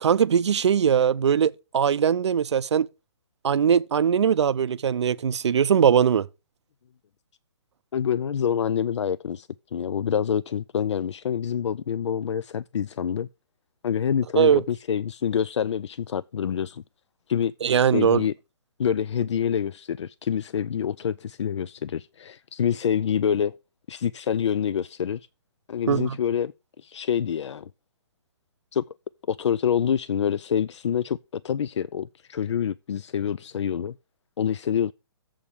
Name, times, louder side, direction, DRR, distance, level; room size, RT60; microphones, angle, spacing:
voice 1, 0.0-2.9 3.4-6.3 14.4-14.6 17.6-18.2 25.9-26.2, right 7 dB, 85° right, 0.5 m, -21 dB
voice 2, 7.9-13.3 13.8-16.8 17.3-17.5 17.9-18.3 18.8-23.6 23.9-25.3 25.7-27.7 28.7-28.8 29.3-34.0 34.4-34.9, left 8 dB, 90° left, 0.4 m, -26 dB
7.3 x 4.7 x 6.9 m
hypercardioid pair, 160°, 14 cm